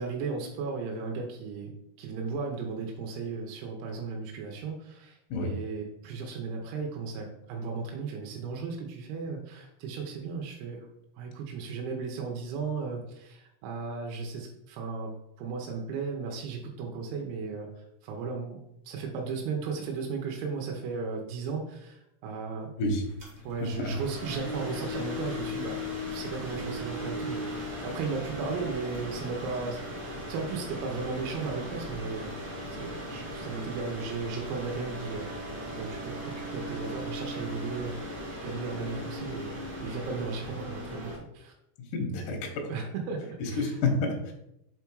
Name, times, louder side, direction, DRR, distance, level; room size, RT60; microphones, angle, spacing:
voice 1, 0.0-10.9 11.2-18.6 18.9-22.7 23.4-32.4 32.7-35.4 35.8-38.1 38.4-41.5 42.7-43.8, right 4 dB, 85° right, 1 dB, 3.6 m, -36 dB
sound 1, 23.0-41.2, left 1 dB, 70° right, 1.0 m, -38 dB
voice 2, 41.9-42.7 43.4-44.3, left 3 dB, 90° left, 1 dB, 1.8 m, -29 dB
7.5 x 3.5 x 4.6 m, 0.82 s
omnidirectional pair, 5.9 m